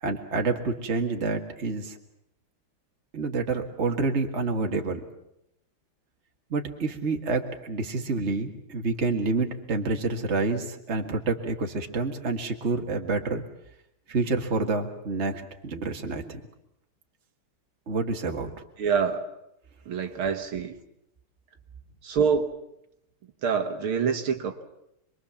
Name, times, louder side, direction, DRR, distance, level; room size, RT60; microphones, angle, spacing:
voice 1, 0.0-1.9 3.1-5.0 6.5-13.4 14.1-16.4 17.9-18.5, right 3 dB, 30° right, 4 dB, 2.1 m, -28 dB
voice 2, 18.8-19.3 19.9-20.7 22.0-22.6 23.4-24.6, right 6 dB, 75° right, 5 dB, 2.3 m, -26 dB
26.5 x 22.5 x 7.2 m, 0.80 s
omnidirectional pair, 2.4 m